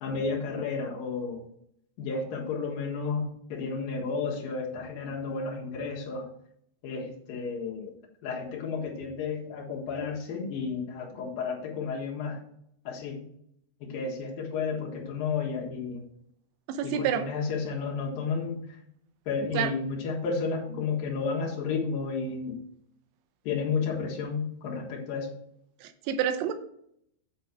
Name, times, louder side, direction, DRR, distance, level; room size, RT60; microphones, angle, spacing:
voice 1, 0.0-1.4 2.0-6.3 6.8-7.9 8.2-12.4 12.8-13.2 13.8-16.0 16.8-18.6 19.3-22.6 23.4-25.3, left 5 dB, 60° left, -2 dB, 2.7 m, -32 dB
voice 2, 16.7-17.3 19.5-19.7 25.8-26.5, right 8 dB, 80° right, 9 dB, 2.9 m, -28 dB
8.8 x 4.5 x 5.9 m, 0.72 s
omnidirectional pair, 5.7 m